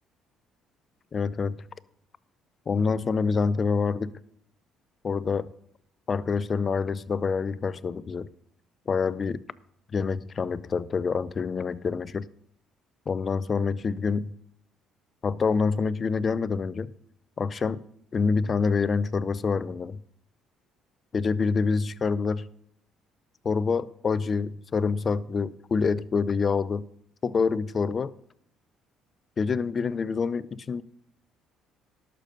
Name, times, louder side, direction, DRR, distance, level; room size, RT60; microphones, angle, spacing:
voice 1, 1.1-1.5 2.7-4.1 5.0-5.5 6.1-8.3 8.9-9.4 9.9-12.2 13.1-14.3 15.2-16.9 17.4-17.8 18.1-20.0 21.1-22.5 23.4-26.8 27.2-28.1 29.4-30.8, left 5 dB, 40° left, 0.5 m, -26 dB
12.0 x 6.7 x 5.2 m
cardioid pair, 85°, 0 cm